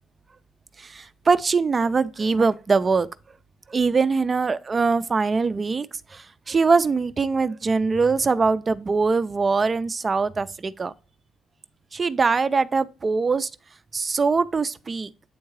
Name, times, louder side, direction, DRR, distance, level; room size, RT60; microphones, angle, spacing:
voice 1, 0.8-3.1 3.7-10.9 11.9-13.5 13.9-15.1, right 4 dB, 35° right, 0.4 m, -22 dB
8.6 x 3.6 x 3.1 m
cardioid pair, 90°, 0 cm